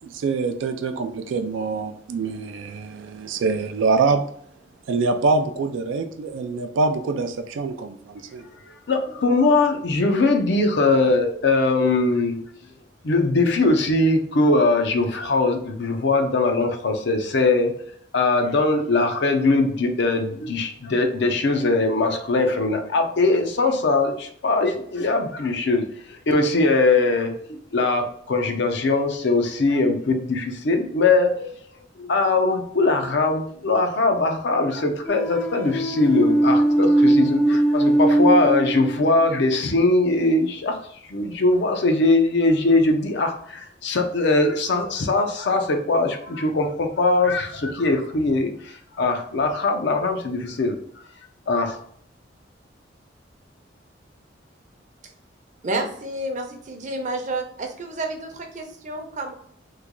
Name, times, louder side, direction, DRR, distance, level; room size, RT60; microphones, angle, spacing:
voice 1, 0.0-4.3 4.9-8.5 37.5-37.6, right 4 dB, 80° right, 0.3 m, -25 dB
voice 2, 8.9-12.4 13.0-17.7 18.1-31.5 32.0-40.8 41.0-50.8 51.5-51.8, left 3 dB, 65° left, 0.5 m, -21 dB
sound 1, 35.1-39.4, right 1 dB, 5° left, 0.5 m, -20 dB
voice 3, 55.6-59.3, right 2 dB, 40° right, 0.6 m, -30 dB
3.1 x 2.2 x 3.6 m
head